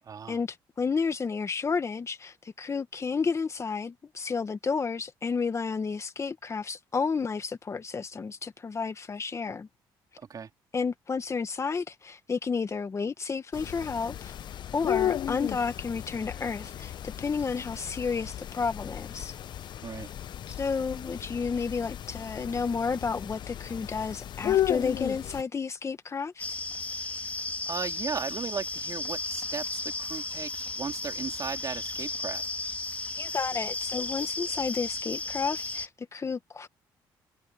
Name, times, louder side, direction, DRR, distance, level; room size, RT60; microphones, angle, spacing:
voice 1, 0.0-0.4 10.2-10.5 19.8-20.1 27.6-32.4, right 6 dB, 45° right, 4.1 m, -36 dB
voice 2, 0.8-9.7 10.7-14.3 14.7-16.9 17.2-19.3 20.6-26.6 33.2-36.7, left 5 dB, 35° left, 1.7 m, -31 dB
sound 1, 13.5-25.4, left 11 dB, 60° left, 0.9 m, -34 dB
sound 2, 26.4-35.9, left 2 dB, 15° left, 2.6 m, -34 dB
cardioid pair, 85°, 9 cm